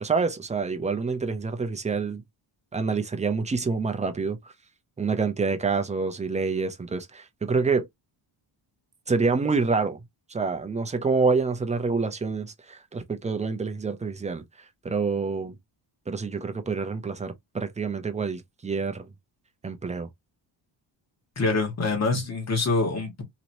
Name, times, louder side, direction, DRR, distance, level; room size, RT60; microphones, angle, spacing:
voice 1, 0.0-2.2 2.7-4.4 5.0-7.9 9.1-10.0 10.3-14.4 14.8-15.6 16.1-19.1 19.6-20.1, right 4 dB, 15° right, 0.4 m, -27 dB
voice 2, 21.3-23.2, left 3 dB, 35° left, 1.4 m, -25 dB
3.0 x 2.8 x 2.5 m
cardioid pair, 135°, 47 cm